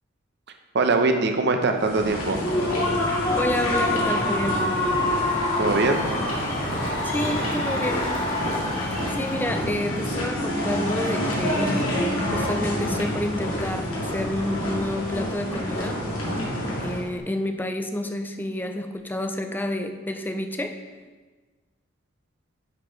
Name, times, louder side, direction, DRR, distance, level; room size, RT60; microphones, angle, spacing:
voice 1, 0.7-2.4 5.6-6.0, right 3 dB, 55° right, 5 dB, 0.7 m, -22 dB
sound 1, 1.8-17.0, equal, 90° left, 2.3 m, -28 dB
Human voice / Cheering / Applause, 2.2-9.9, left 1 dB, 35° left, 1.9 m, -27 dB
voice 2, 3.4-4.6 7.0-8.1 9.1-11.8 12.3-16.0 16.8-20.8, left 1 dB, 10° left, 6 dB, 0.5 m, -29 dB
9.8 x 4.4 x 4.4 m, 1.3 s
head